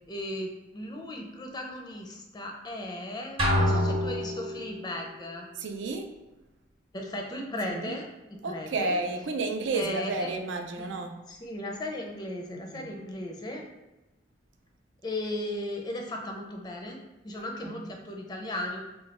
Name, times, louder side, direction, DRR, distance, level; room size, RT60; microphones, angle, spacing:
voice 1, 0.1-5.5 6.9-8.0 8.3-9.0 9.7-10.3 11.3-13.6 15.0-17.0 17.2-18.8, left 1 dB, 20° left, 1 dB, 0.4 m, -36 dB
sound 1, 3.4-4.9, left 1 dB, 30° right, 0.8 m, -26 dB
voice 2, 3.6-4.0 5.6-6.1 7.6-7.9 8.4-11.2 12.7-13.0 17.4-17.9, right 3 dB, 75° right, 5 dB, 0.4 m, -32 dB
3.1 x 2.2 x 4.1 m, 1.0 s
head